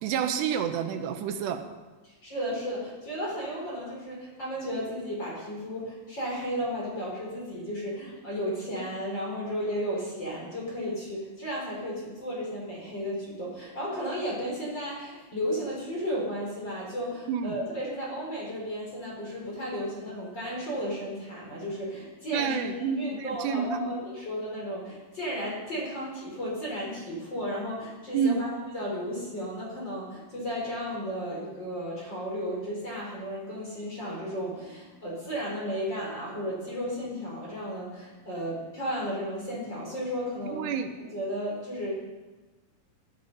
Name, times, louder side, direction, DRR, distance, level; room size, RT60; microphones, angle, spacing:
voice 1, 0.0-1.7 17.3-17.6 22.3-23.9 28.1-28.4 40.5-41.0, right 7 dB, 85° right, 6 dB, 3.2 m, -29 dB
voice 2, 2.0-40.7 41.0-41.9, equal, 25° left, -4 dB, 5.2 m, -34 dB
18.5 x 12.5 x 5.6 m, 1.2 s
omnidirectional pair, 4.7 m